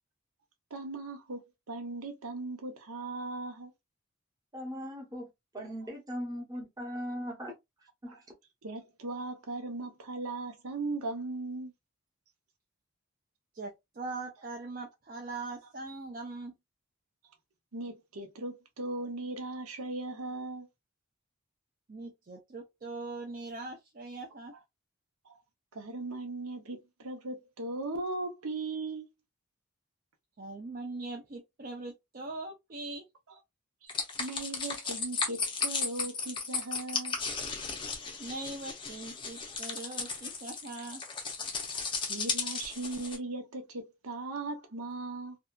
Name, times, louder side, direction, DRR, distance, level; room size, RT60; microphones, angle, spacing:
voice 1, 0.7-3.7 8.1-8.2 8.6-11.7 17.7-20.7 25.2-25.3 25.7-29.1 33.8-37.2 41.7-41.8 42.1-45.4, right 2 dB, 85° right, 0.7 m, -38 dB
voice 2, 4.5-5.3 5.5-7.5 8.0-8.1, equal, 15° right, 0.8 m, -38 dB
voice 3, 13.5-16.6 21.9-24.5 30.4-33.1 38.2-41.0, right 3 dB, 40° right, 0.4 m, -41 dB
sound 1, 33.9-43.2, left 4 dB, 20° left, 0.5 m, -35 dB
2.7 x 2.2 x 2.2 m
head